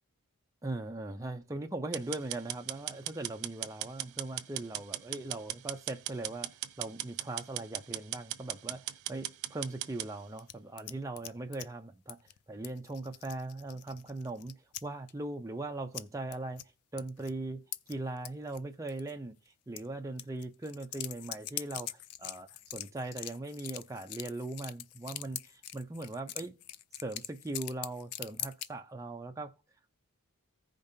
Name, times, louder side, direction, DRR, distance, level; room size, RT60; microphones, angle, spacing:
voice 1, 0.6-6.5 6.8-12.2 12.5-14.5 14.8-16.6 16.9-17.6 17.9-19.4 19.7-26.5 26.9-29.5, right 2 dB, 15° right, 0.4 m, -40 dB
sound 1, 1.9-10.1, right 14 dB, 70° right, 0.4 m, -38 dB
sound 2, 10.4-11.7 12.1-12.4 12.6-14.8 15.1-15.2 15.9-16.0 16.3-16.6 17.0-17.3 17.7-18.6 18.9-19.1 19.8-19.9 20.2-28.7, left 12 dB, 80° left, 0.4 m, -43 dB
15.5 x 5.2 x 2.6 m
head